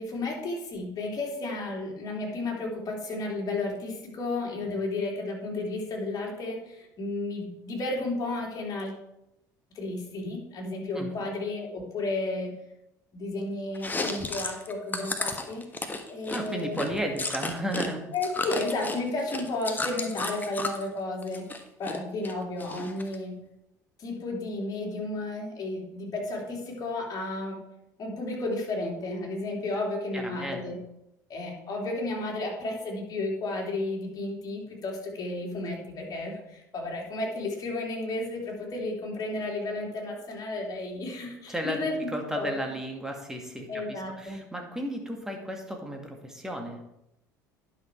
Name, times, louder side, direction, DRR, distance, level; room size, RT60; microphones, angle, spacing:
voice 1, 0.0-8.9 9.7-12.5 13.1-15.6 16.1-16.8 18.1-21.5 21.8-23.4 24.0-27.6 28.0-30.8 31.3-42.1 42.3-42.5 43.7-44.4, left 2 dB, 40° left, -1 dB, 3.2 m, -33 dB
Chewing mastication, 13.7-17.9 18.1-20.8 21.2-22.0 22.2-23.2, left 3 dB, 20° left, 1.3 m, -33 dB
voice 2, 16.3-18.0 30.1-30.6 41.5-46.8, right 1 dB, 5° right, 2 dB, 2.3 m, -34 dB
10.5 x 6.2 x 4.7 m, 0.85 s
hypercardioid pair, 65°, 10 cm